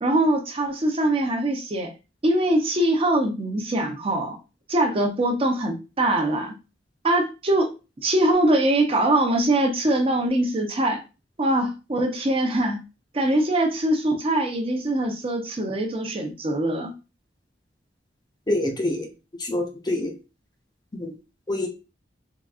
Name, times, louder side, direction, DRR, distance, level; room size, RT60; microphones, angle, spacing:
voice 1, 0.0-1.9 2.2-4.4 4.7-6.5 7.0-7.7 8.0-11.0 11.4-12.8 13.1-16.9, right 1 dB, 30° right, 3 dB, 0.7 m, -22 dB
voice 2, 18.5-19.1 19.4-20.2 21.0-21.2 21.5-21.7, left 1 dB, 25° left, 2 dB, 0.6 m, -26 dB
3.7 x 2.5 x 2.4 m, 0.30 s
head